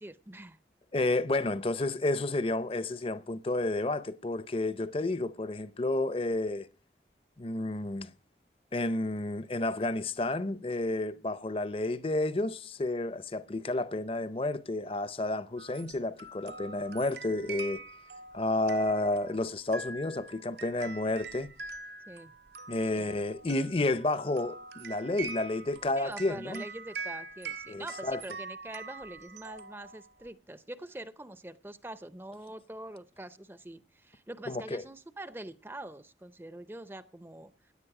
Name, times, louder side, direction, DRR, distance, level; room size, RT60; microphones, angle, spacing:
voice 1, 0.0-0.6 22.1-22.3 22.9-23.2 26.0-37.7, right 1 dB, 15° right, 0.6 m, -44 dB
voice 2, 0.9-6.7 7.4-8.1 8.7-17.8 18.3-21.5 22.7-26.6 27.7-28.2 34.5-34.8, left 2 dB, 30° left, 0.6 m, -31 dB
sound 1, 15.6-30.3, right 4 dB, 80° right, 1.7 m, -44 dB
16.5 x 10.5 x 4.8 m
head